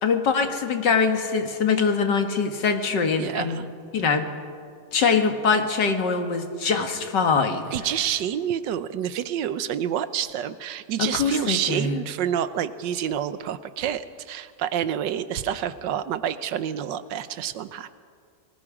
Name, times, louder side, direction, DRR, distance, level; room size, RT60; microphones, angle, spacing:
voice 1, 0.0-3.6 3.9-4.2 4.9-7.7 11.0-12.0, left 5 dB, 80° left, 6 dB, 2.2 m, -23 dB
voice 2, 3.2-3.6 6.6-6.8 7.7-17.9, right 9 dB, 90° right, 13 dB, 1.5 m, -28 dB
28.5 x 20.0 x 5.0 m, 2.2 s
omnidirectional pair, 1.9 m